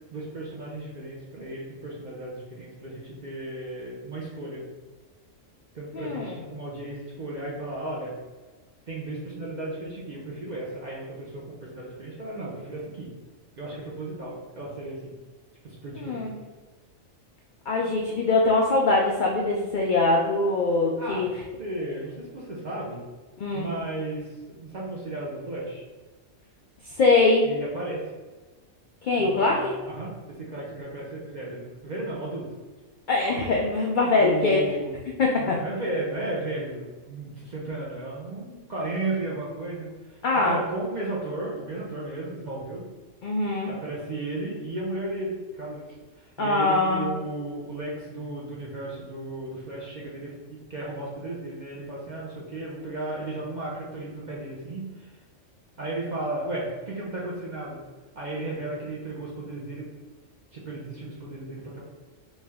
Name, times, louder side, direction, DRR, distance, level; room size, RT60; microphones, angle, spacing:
voice 1, 0.1-4.6 5.7-8.1 8.9-13.1 13.6-15.1 15.6-16.3 21.0-21.3 21.6-23.0 23.5-25.8 27.4-28.0 29.2-32.5 34.2-34.9 35.4-42.8 43.7-45.9 46.2-55.1 55.8-57.8 58.1-59.9 60.5-61.8, right 2 dB, 50° right, -5 dB, 0.6 m, -34 dB
voice 2, 5.9-6.4 16.0-16.4 17.7-21.3 23.4-23.7 26.8-27.5 29.0-29.8 33.1-34.8 35.2-35.6 40.2-40.6 43.2-43.7 46.4-47.1, left 3 dB, 70° left, -1 dB, 0.4 m, -23 dB
3.2 x 2.7 x 3.4 m, 1.3 s
omnidirectional pair, 1.3 m